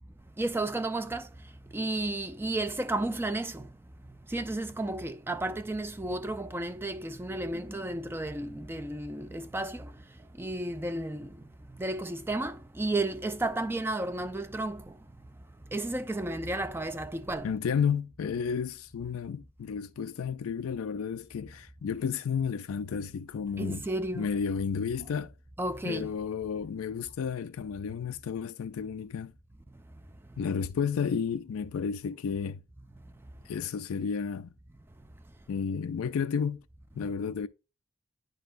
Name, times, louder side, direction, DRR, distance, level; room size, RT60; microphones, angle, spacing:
voice 1, 0.4-1.3 1.7-3.7 4.3-9.9 10.4-11.3 11.8-14.9 15.7-17.5 23.6-24.3 25.6-26.1, right 2 dB, 10° right, 0.3 m, -32 dB
voice 2, 17.4-23.9 24.2-25.3 25.8-29.3 30.4-32.6 33.4-34.5 35.5-36.6 36.9-37.5, left 6 dB, 80° left, 0.4 m, -32 dB
10.0 x 4.0 x 2.5 m
head